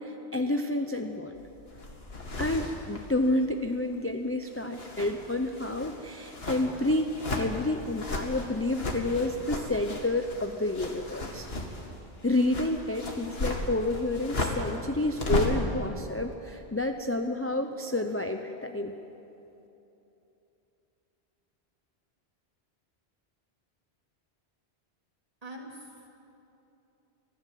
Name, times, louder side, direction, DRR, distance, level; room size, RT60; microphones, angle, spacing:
voice 1, 0.0-1.4 2.4-11.5 12.2-18.9, left 2 dB, 15° left, 5 dB, 0.7 m, -29 dB
sound 1, 1.4-4.1 4.5-15.7, left 2 dB, 65° left, 2.4 m, -36 dB
voice 2, 25.4-26.1, right 1 dB, 35° right, -2 dB, 3.3 m, -43 dB
25.5 x 15.5 x 7.6 m, 3.0 s
omnidirectional pair, 1.1 m